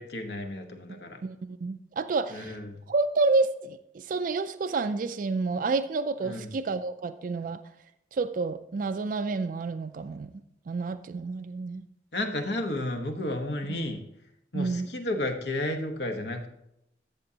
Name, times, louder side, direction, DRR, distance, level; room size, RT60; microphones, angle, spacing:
voice 1, 0.0-1.2 2.3-2.8 6.3-6.5 12.1-14.0 14.5-16.5, left 1 dB, 65° left, 5 dB, 1.1 m, -32 dB
voice 2, 0.9-2.6 2.9-7.6 8.1-10.3 10.7-11.9 13.7-13.9 14.5-14.9, right 3 dB, 45° right, 10 dB, 0.3 m, -29 dB
13.5 x 6.8 x 2.8 m, 0.80 s
head